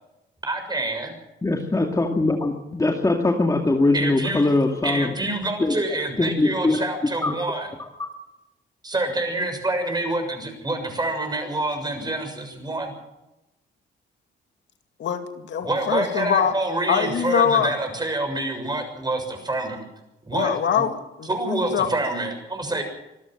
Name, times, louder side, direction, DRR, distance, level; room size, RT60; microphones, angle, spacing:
voice 1, 0.4-1.1 3.9-4.5 4.8-7.7 8.8-12.9 15.6-19.8 20.3-20.8 21.3-22.8, right 2 dB, 20° right, 5 dB, 6.9 m, -27 dB
voice 2, 1.4-5.1 5.6-5.7 6.2-6.8 7.2-7.3, left 2 dB, 15° left, 2 dB, 2.3 m, -21 dB
voice 3, 15.0-16.5 16.9-17.7 20.3-21.9, left 8 dB, 65° left, 6 dB, 2.3 m, -23 dB
25.5 x 13.5 x 7.7 m, 0.97 s
cardioid pair, 90°, 20 cm